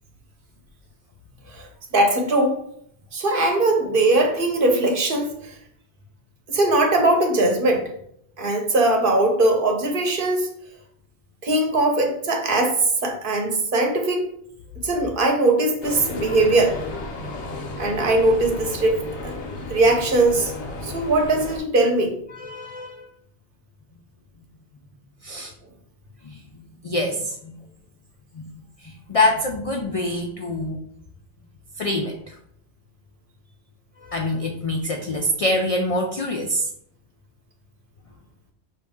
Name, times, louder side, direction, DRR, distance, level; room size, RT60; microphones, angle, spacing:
voice 1, 1.5-2.6 3.1-5.6 6.5-7.9 8.4-10.5 11.4-14.3 14.8-16.8 17.8-19.3 19.7-20.5 20.8-22.2, right 2 dB, 55° right, 2 dB, 0.9 m, -20 dB
sound 1, 15.8-21.6, left 2 dB, 90° left, 1.1 m, -33 dB
voice 2, 22.3-23.1 25.2-25.5 26.2-27.5 28.3-30.8 31.8-32.4 34.0-36.7, left 1 dB, 60° left, 2 dB, 0.3 m, -25 dB
5.2 x 2.7 x 3.5 m, 0.69 s
omnidirectional pair, 1.1 m